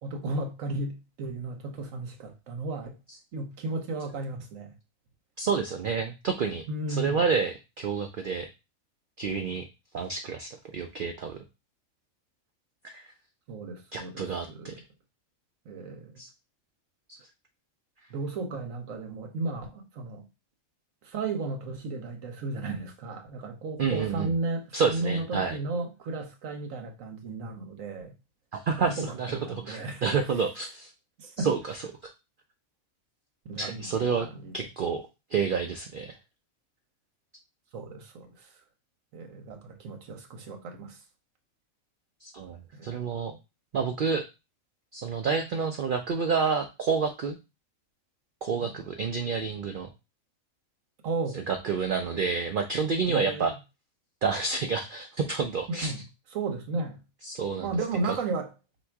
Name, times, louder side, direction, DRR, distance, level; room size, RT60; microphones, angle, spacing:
voice 1, 0.0-3.0 3.3-4.7 6.7-7.3 13.5-14.8 15.6-16.2 18.1-20.3 21.0-28.1 28.9-30.1 31.2-31.5 33.4-34.7 37.7-38.5 39.1-41.0 42.7-42.9 48.6-48.7 51.0-51.4 53.1-53.5 55.7-56.0 56.3-57.0 57.6-58.5, right 3 dB, 70° right, 1.3 m, -34 dB
voice 2, 5.4-8.5 9.2-9.6 9.9-11.4 12.8-13.0 13.9-14.8 16.2-16.3 23.8-24.3 24.7-25.6 28.5-30.9 31.4-31.6 32.0-32.1 33.6-34.3 34.5-35.0 35.3-36.1 42.2-43.3 43.7-44.2 44.9-47.4 48.4-49.9 51.3-53.5 54.2-55.9 57.2-57.7 58.1-58.2, right 5 dB, 90° right, 0.4 m, -29 dB
3.5 x 2.9 x 4.5 m
omnidirectional pair, 1.5 m